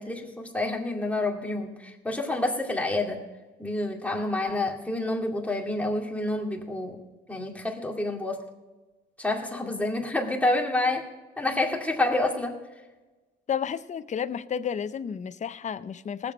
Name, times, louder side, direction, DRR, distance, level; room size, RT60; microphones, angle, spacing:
voice 1, 0.0-3.2 3.6-7.0 7.3-8.5 9.2-11.1 11.4-12.6, left 2 dB, 5° left, 0 dB, 2.2 m, -28 dB
voice 2, 13.5-16.3, left 8 dB, 35° left, 12 dB, 0.6 m, -31 dB
19.0 x 7.6 x 5.2 m, 1.2 s
cardioid pair, 90°, 20 cm